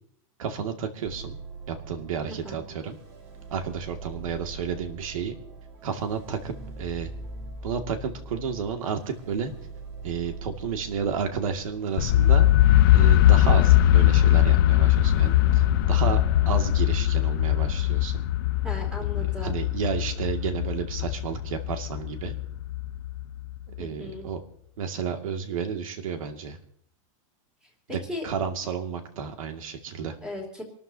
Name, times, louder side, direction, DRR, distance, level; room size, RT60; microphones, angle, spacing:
voice 1, 0.4-1.4 1.7-3.0 3.5-5.4 5.8-7.1 7.6-9.5 10.0-12.5 12.9-18.2 19.2-22.4 23.8-24.4 24.8-26.6 27.9-30.2, right 6 dB, 80° right, 5 dB, 2.4 m, -31 dB
sound 1, 1.0-17.0, right 3 dB, 40° right, 4.2 m, -42 dB
voice 2, 2.3-2.6 18.6-19.6 23.8-24.3 28.1-28.3 30.2-30.6, left 1 dB, 5° right, 1 dB, 2.9 m, -36 dB
sound 2, 12.0-23.8, left 13 dB, 40° left, 0.5 m, -21 dB
27.5 x 13.0 x 2.9 m, 0.66 s
supercardioid pair, 180°, 17 cm